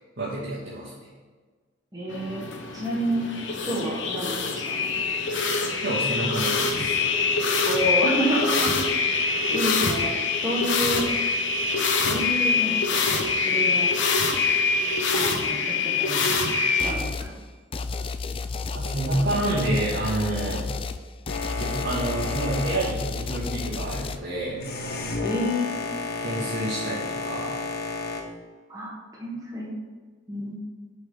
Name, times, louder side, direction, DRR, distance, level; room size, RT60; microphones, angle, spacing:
voice 1, 0.2-1.1 5.8-7.0 18.7-20.7 21.6-24.6 26.2-27.6, right 1 dB, 70° right, -9 dB, 2.4 m, -28 dB
voice 2, 1.9-2.4 2.7-3.3 3.6-4.8 7.6-8.7 9.2-10.1 10.4-11.0 12.0-13.1 13.3-13.9 15.1-16.3 16.8-17.3 25.2-25.7 28.7-29.7 30.3-30.6, equal, 20° right, -5 dB, 1.5 m, -29 dB
sound 1, 2.1-16.9, left 4 dB, 75° left, 1.1 m, -24 dB
sound 2, 16.8-17.3 17.7-24.2, left 4 dB, 30° left, 0.4 m, -32 dB
Boat Water vehicle, 21.3-28.2, left 3 dB, 55° left, 1.2 m, -33 dB
10.5 x 5.3 x 3.8 m, 1.4 s
head